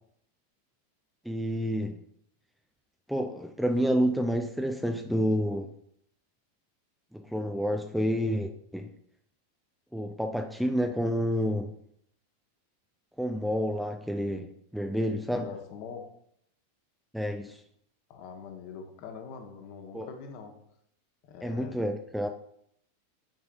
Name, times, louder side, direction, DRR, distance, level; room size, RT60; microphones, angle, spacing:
voice 1, 1.3-2.0 3.1-5.7 7.1-8.9 9.9-11.8 13.2-15.5 17.1-17.6 19.9-20.1 21.4-22.3, equal, ahead, 5 dB, 0.5 m, -29 dB
voice 2, 15.4-16.1 18.1-20.5 21.2-21.8, left 6 dB, 45° left, 4 dB, 1.1 m, -43 dB
10.5 x 4.7 x 2.5 m, 0.69 s
figure-of-eight pair, 90°, 0 cm